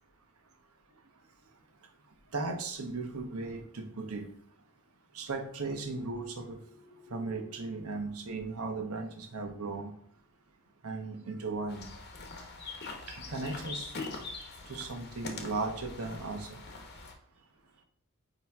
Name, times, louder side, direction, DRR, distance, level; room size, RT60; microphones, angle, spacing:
voice 1, 2.3-4.3 5.1-9.9 10.8-11.9 13.3-13.9 14.7-16.6, right 3 dB, 90° right, 5 dB, 0.9 m, -37 dB
sound 1, 11.7-17.1, left 3 dB, 50° left, 0.9 m, -43 dB
8.8 x 3.0 x 3.5 m, 0.63 s
head